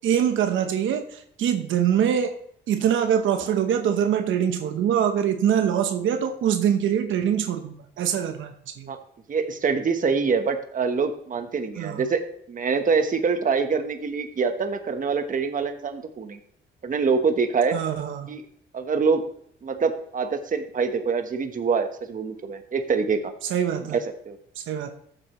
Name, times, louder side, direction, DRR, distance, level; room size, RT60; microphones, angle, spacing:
voice 1, 0.0-2.4 2.7-8.9 11.8-12.0 17.7-18.3 23.5-24.0 24.6-24.9, right 9 dB, 80° right, 6 dB, 1.0 m, -24 dB
voice 2, 9.3-12.2 12.5-16.4 16.8-17.8 18.3-18.4 18.7-19.2 19.6-23.3 23.9-24.4, right 5 dB, 40° right, 7 dB, 1.2 m, -25 dB
13.5 x 7.8 x 3.1 m, 0.66 s
cardioid pair, 90°, 20 cm